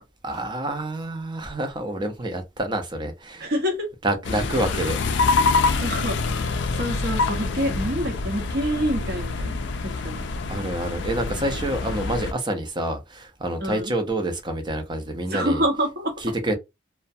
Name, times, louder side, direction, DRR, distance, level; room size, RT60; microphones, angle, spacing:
voice 1, 0.2-3.5 4.0-5.0 10.5-15.6 16.2-16.6, right 1 dB, 25° right, 0.5 m, -27 dB
voice 2, 3.4-3.9 5.8-6.2 6.8-9.6 10.0-10.3 13.6-13.9 15.3-16.1, equal, 55° right, 0.8 m, -26 dB
sound 1, 4.2-12.3, left 4 dB, 60° left, 0.3 m, -26 dB
2.4 x 2.1 x 2.6 m
head